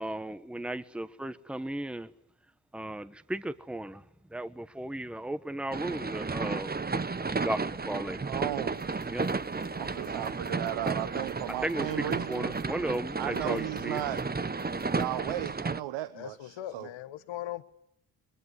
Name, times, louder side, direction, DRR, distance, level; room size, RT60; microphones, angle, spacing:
voice 1, 0.0-2.1 2.7-4.0 4.3-6.8 7.3-8.3 9.1-9.3 11.5-14.0, right 1 dB, ahead, 1.3 m, -35 dB
sound 1, 5.7-15.8, right 4 dB, 20° right, 1.0 m, -33 dB
voice 2, 8.2-8.9 9.8-12.6 13.2-14.2 14.9-16.9, right 13 dB, 80° right, 1.0 m, -35 dB
sound 2, 8.7-15.1, right 5 dB, 60° right, 5.8 m, -50 dB
voice 3, 16.1-17.6, left 13 dB, 75° left, 1.4 m, -39 dB
23.0 x 21.5 x 9.7 m
supercardioid pair, 50°, 46 cm